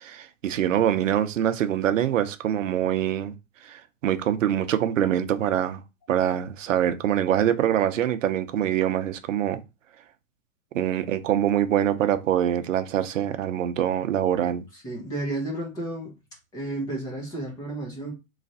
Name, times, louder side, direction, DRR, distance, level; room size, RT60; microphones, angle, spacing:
voice 1, 0.0-3.3 3.6-5.8 6.1-9.6 10.7-14.6, right 10 dB, 65° right, 0.7 m, -24 dB
voice 2, 14.7-16.1 16.5-18.1, right 2 dB, 10° left, 0.6 m, -32 dB
3.2 x 2.4 x 3.9 m
hypercardioid pair, 155°, 41 cm